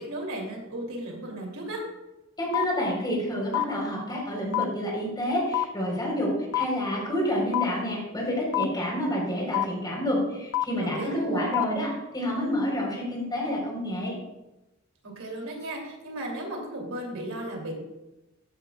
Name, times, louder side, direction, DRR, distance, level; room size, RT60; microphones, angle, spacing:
voice 1, 0.0-1.8 10.8-11.5 15.0-17.7, right 1 dB, 80° right, 0 dB, 2.8 m, -35 dB
voice 2, 2.4-11.0 11.3-14.1, equal, 20° left, -2 dB, 3.9 m, -28 dB
sound 1, 2.5-2.6 3.5-3.6 4.5-4.6 5.5-5.6 6.5-6.6 7.5-7.6 8.5-8.6 9.5-9.6 10.5-10.6 11.5-11.6, left 14 dB, 70° left, 0.6 m, -24 dB
13.5 x 10.0 x 2.3 m, 0.97 s
head